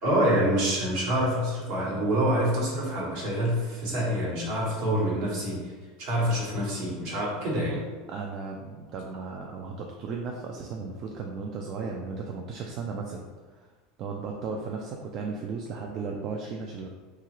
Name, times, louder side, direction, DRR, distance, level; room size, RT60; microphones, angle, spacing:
voice 1, 0.0-5.7 6.0-7.8, equal, 65° right, -5 dB, 1.2 m, -26 dB
voice 2, 8.1-13.2 14.0-16.9, right 4 dB, 45° right, 1 dB, 0.3 m, -35 dB
2.9 x 2.4 x 3.0 m, 1.4 s
supercardioid pair, 130°, 0 cm